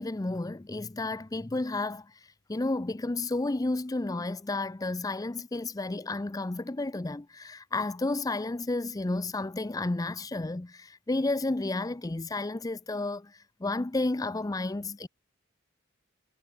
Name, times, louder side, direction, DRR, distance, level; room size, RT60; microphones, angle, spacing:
voice 1, 0.0-2.0 2.5-13.3 13.6-15.1, left 2 dB, 15° left, 0.4 m, -31 dB
head